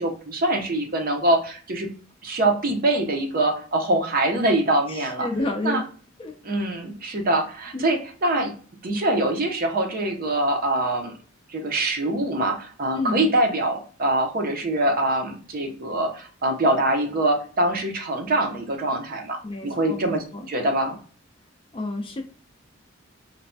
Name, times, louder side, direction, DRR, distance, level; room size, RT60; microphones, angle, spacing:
voice 1, 0.0-1.9 2.2-5.3 5.6-5.8 6.4-8.5 8.8-11.1 11.5-21.0, right 1 dB, 45° right, 3 dB, 0.6 m, -24 dB
voice 2, 4.9-5.9 6.2-6.4 7.7-7.9 13.0-13.2 19.4-20.5 21.7-22.2, left 2 dB, 25° left, 4 dB, 0.4 m, -30 dB
3.1 x 2.1 x 2.5 m, 0.41 s
head